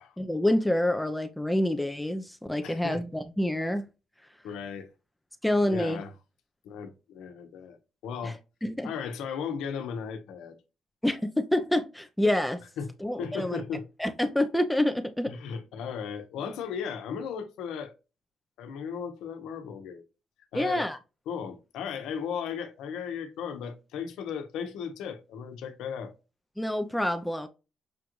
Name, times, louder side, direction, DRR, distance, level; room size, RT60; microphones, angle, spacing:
voice 1, 0.2-3.9 5.4-6.0 8.2-8.3 8.6-8.9 11.0-12.6 13.0-13.6 14.0-15.3 20.5-21.0 26.6-27.5, left 1 dB, 5° left, 0.6 m, -27 dB
voice 2, 2.6-3.0 4.4-4.9 5.7-6.1 6.6-7.8 8.0-8.4 8.8-10.6 12.8-12.9 13.2-13.8 15.3-17.9 18.6-20.0 20.5-20.9 21.3-26.1, left 7 dB, 90° left, 1.0 m, -36 dB
6.8 x 2.5 x 3.0 m
cardioid pair, 90°, 0 cm